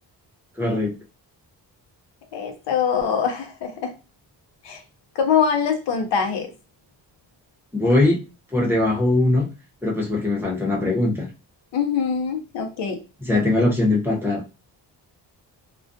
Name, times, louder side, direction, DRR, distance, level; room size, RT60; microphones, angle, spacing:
voice 1, 0.6-0.9 7.7-8.2 8.5-9.5 9.8-11.3 13.2-14.4, left 2 dB, 5° right, 0.8 m, -20 dB
voice 2, 2.3-3.9 4.6-4.8 5.2-6.5 11.7-13.0, left 7 dB, 85° left, 0.7 m, -23 dB
2.3 x 2.2 x 2.6 m
wide cardioid pair, 115°, 42 cm